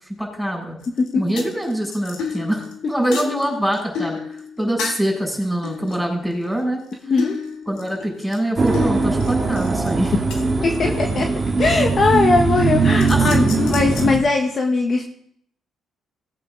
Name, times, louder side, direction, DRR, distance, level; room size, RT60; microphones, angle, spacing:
voice 1, 0.2-0.8 1.1-4.2 4.6-7.1 7.7-10.1 13.1-13.5, right 1 dB, ahead, -1 dB, 6.7 m, -24 dB
sound 1, 0.8-1.1 1.4-5.2 5.6-6.9 7.2-11.2 11.8-12.2 12.5-14.2, left 5 dB, 90° left, 2.1 m, -32 dB
voice 2, 7.1-7.4 10.6-11.2 11.6-15.1, left 3 dB, 45° left, 2 dB, 1.5 m, -19 dB
sound 2, 8.6-14.2, right 4 dB, 30° right, 2.0 m, -20 dB
18.5 x 8.8 x 4.0 m, 0.65 s
cardioid pair, 90°, 0 cm